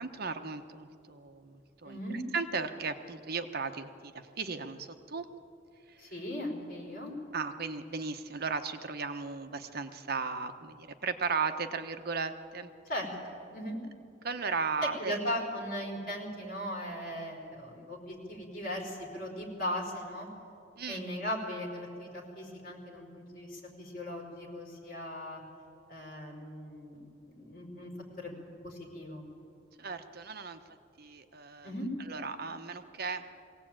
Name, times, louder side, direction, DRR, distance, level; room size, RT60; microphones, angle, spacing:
voice 1, 0.0-2.0 2.3-5.2 7.3-12.7 14.2-15.2 20.8-21.0 29.8-30.6 31.0-31.7 32.1-33.2, right 4 dB, 55° right, 8 dB, 1.0 m, -36 dB
voice 2, 1.8-2.2 6.0-7.1 12.9-13.8 14.8-20.3 20.9-25.4 25.9-27.0 27.3-27.9 28.2-28.3 28.6-29.2 31.6-31.9, equal, 50° left, 0 dB, 4.6 m, -38 dB
22.0 x 17.0 x 8.8 m, 2.6 s
head